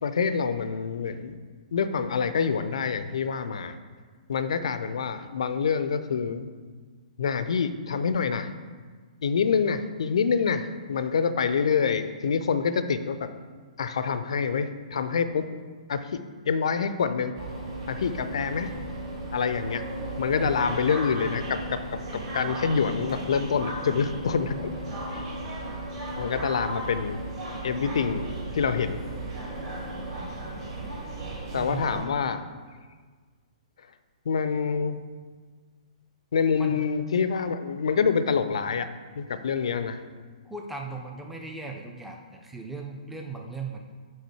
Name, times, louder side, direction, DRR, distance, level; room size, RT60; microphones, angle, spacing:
voice 1, 0.0-1.4 1.7-3.8 4.3-6.5 7.2-8.5 9.2-13.3 13.8-15.5 15.9-16.2 16.5-17.3 17.9-18.7 19.3-19.8 20.2-21.8 22.1-24.6 25.1-25.2 26.2-27.2 27.6-28.2 28.5-29.0 31.5-32.4 34.3-35.0 36.3-38.9 39.2-40.0, left 6 dB, 55° left, 11 dB, 0.4 m, -26 dB
sound 1, 17.3-32.0, right 1 dB, 40° right, 2.1 m, -35 dB
voice 2, 20.3-20.8 31.5-32.0 36.6-36.8 40.5-43.8, right 4 dB, 5° right, 1 dB, 0.5 m, -38 dB
6.4 x 4.8 x 4.6 m, 1.5 s
figure-of-eight pair, 120°, 4 cm